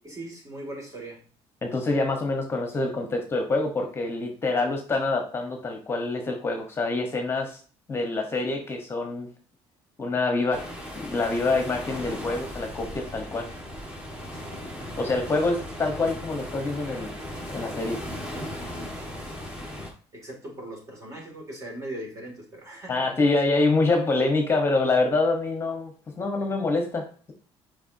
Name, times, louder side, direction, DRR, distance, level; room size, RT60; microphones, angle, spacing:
voice 1, 0.0-1.2 14.3-14.6 16.0-16.1 18.6-19.3 20.1-23.1, right 1 dB, 30° right, 0 dB, 2.4 m, -40 dB
voice 2, 1.6-7.6 7.9-9.3 10.0-10.6 10.9-13.5 15.0-17.1 17.5-18.0 22.9-27.3, left 3 dB, 25° left, 3 dB, 1.1 m, -26 dB
sound 1, 10.5-19.9, left 1 dB, 10° right, 1.6 m, -37 dB
6.9 x 5.1 x 2.7 m, 0.41 s
cardioid pair, 125°, 11 cm